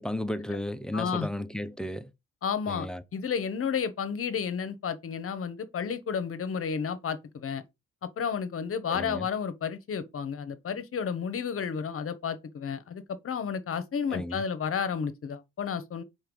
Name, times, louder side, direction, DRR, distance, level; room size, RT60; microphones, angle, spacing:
voice 1, 0.0-2.1 2.7-3.0 8.9-9.3 14.1-14.4, left 1 dB, ahead, 0.7 m, -34 dB
voice 2, 0.9-1.3 2.4-2.9 3.1-7.6 8.0-16.0, left 6 dB, 45° left, 1.0 m, -32 dB
4.6 x 4.3 x 5.3 m
cardioid pair, 90°, 30 cm